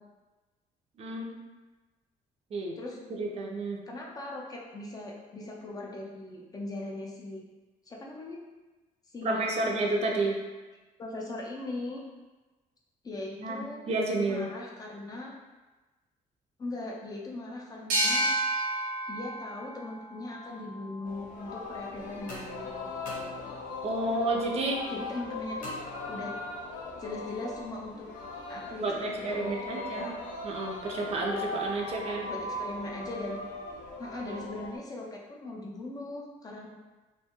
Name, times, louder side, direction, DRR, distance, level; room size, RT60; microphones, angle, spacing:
voice 1, 1.0-1.3 2.5-2.8 3.1-3.8 9.2-10.4 13.4-14.5 23.8-24.8 28.8-30.1 30.4-32.3, right 2 dB, 50° right, 0 dB, 0.4 m, -30 dB
voice 2, 3.9-7.4 7.9-8.4 9.1-9.7 11.0-12.0 13.0-13.8 14.3-15.3 16.6-18.3 19.1-23.5 24.9-25.7 26.1-26.3 27.0-28.1 28.5-30.1 32.1-33.4 34.0-36.7, left 2 dB, 25° left, -2 dB, 0.4 m, -39 dB
sound 1, 17.9-21.3, right 1 dB, 90° right, 0.7 m, -31 dB
Singing, 21.1-34.8, left 2 dB, 90° left, 0.4 m, -39 dB
sound 2, 22.3-23.9 25.6-26.6, left 1 dB, 70° left, 0.8 m, -46 dB
2.5 x 2.3 x 2.8 m, 1.2 s
cardioid pair, 135°, 14 cm